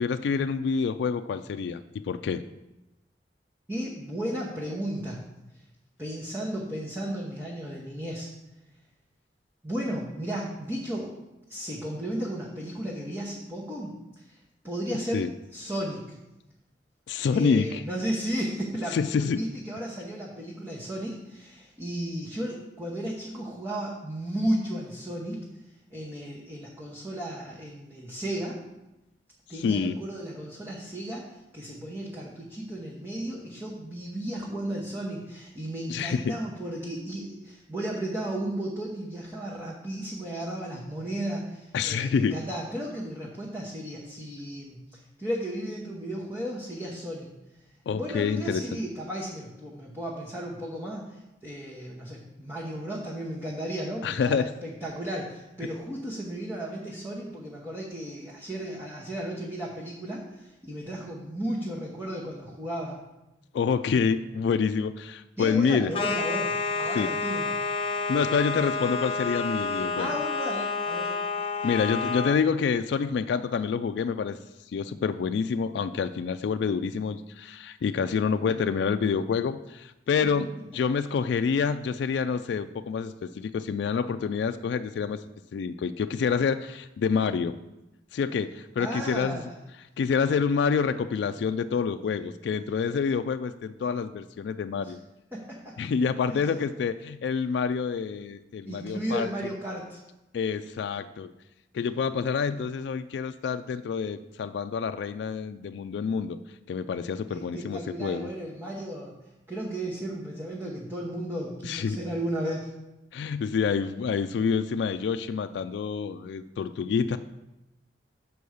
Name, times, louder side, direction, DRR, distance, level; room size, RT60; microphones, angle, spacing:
voice 1, 0.0-2.4 15.1-15.3 17.1-17.8 18.9-19.4 29.6-30.0 35.9-36.3 41.7-42.4 47.9-48.6 54.0-54.5 63.5-65.9 66.9-67.1 68.1-70.2 71.6-74.4 74.7-85.2 85.5-87.6 88.1-89.4 90.0-95.0 95.8-99.3 100.3-101.3 101.7-106.4 106.7-108.3 111.6-112.0 113.1-117.2, left 6 dB, 75° left, 9 dB, 0.3 m, -27 dB
voice 2, 3.7-5.2 6.0-8.3 9.6-11.1 11.5-14.4 14.6-15.2 15.5-16.2 17.3-25.5 25.9-28.6 29.5-47.4 47.9-63.0 65.4-67.6 70.0-71.1 88.8-89.5 94.8-94.9 95.3-95.7 96.3-96.5 98.6-100.0 107.3-109.2 109.5-112.7, right 1 dB, 15° right, -4 dB, 0.9 m, -34 dB
sound 1, 65.9-72.4, left 4 dB, 30° left, 0.6 m, -29 dB
6.9 x 4.6 x 6.3 m, 0.95 s
head